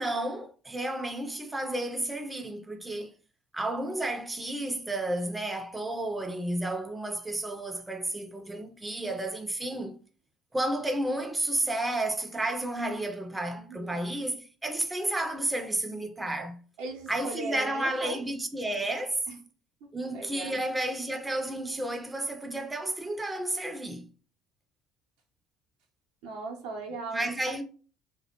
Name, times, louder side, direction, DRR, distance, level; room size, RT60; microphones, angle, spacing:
voice 1, 0.0-3.1 3.5-10.0 10.5-16.6 17.1-19.2 19.9-24.1 27.1-27.6, right 1 dB, 15° right, 0.4 m, -32 dB
voice 2, 13.5-14.0 16.8-18.2 19.3-19.4 20.1-20.6 26.2-27.3, right 3 dB, 75° right, 0.6 m, -38 dB
2.3 x 2.1 x 2.8 m
hypercardioid pair, 60°, 0 cm